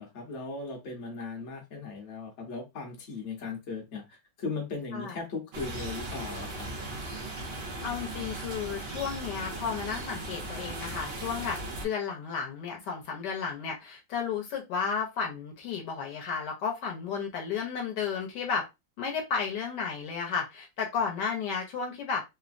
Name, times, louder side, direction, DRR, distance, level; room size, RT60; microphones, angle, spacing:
voice 1, 0.0-6.7, left 4 dB, 50° left, 0.9 m, -38 dB
sound 1, 5.5-11.9, right 2 dB, 90° right, 0.5 m, -37 dB
voice 2, 7.8-18.6 19.0-22.2, left 6 dB, 70° left, 1.2 m, -33 dB
3.2 x 2.0 x 2.5 m
omnidirectional pair, 2.0 m